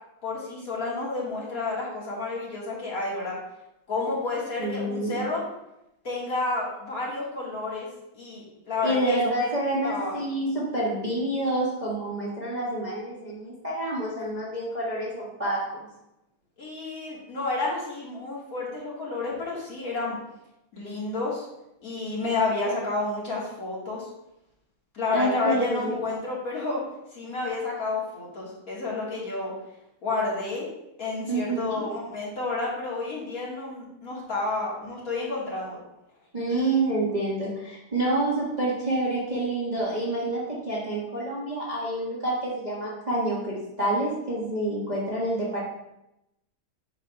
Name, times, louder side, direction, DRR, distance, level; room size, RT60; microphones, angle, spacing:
voice 1, 0.2-3.4 3.9-5.4 6.0-7.9 8.1-9.5 9.8-10.1 16.6-20.2 20.7-21.4 21.8-24.1 24.9-26.8 27.1-29.5 30.0-30.7 31.0-35.8 36.5-36.8, left 3 dB, 45° left, -6 dB, 2.0 m, -30 dB
voice 2, 4.6-5.3 8.8-15.9 25.1-26.0 31.3-31.8 36.3-45.7, right 1 dB, 25° right, -7 dB, 1.2 m, -28 dB
8.1 x 5.9 x 2.3 m, 0.87 s
omnidirectional pair, 2.2 m